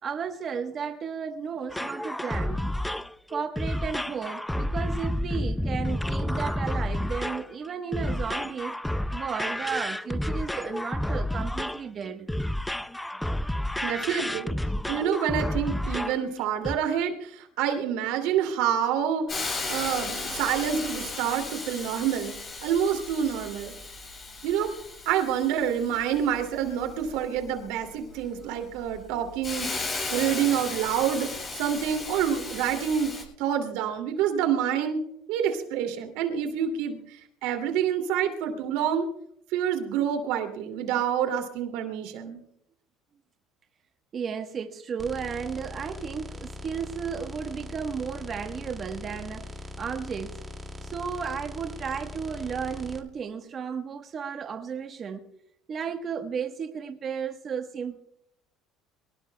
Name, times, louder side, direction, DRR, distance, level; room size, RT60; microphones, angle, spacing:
voice 1, 0.0-2.7 3.3-8.8 9.1-12.3 44.1-50.4 50.8-55.3 55.7-58.0, right 6 dB, 35° right, 1.1 m, -34 dB
sound 1, 1.7-16.3 16.6-16.8, left 1 dB, 5° left, 0.4 m, -30 dB
voice 2, 13.8-14.5 14.9-22.3 22.6-23.7 24.4-24.7 25.1-35.0 35.3-39.1 39.5-42.4, right 9 dB, 80° right, 2.5 m, -27 dB
Hiss, 19.3-33.2, left 3 dB, 30° left, 7.6 m, -36 dB
sound 2, 45.0-53.0, left 1 dB, 15° right, 2.2 m, -41 dB
23.5 x 19.0 x 2.2 m
cardioid pair, 120°, 0 cm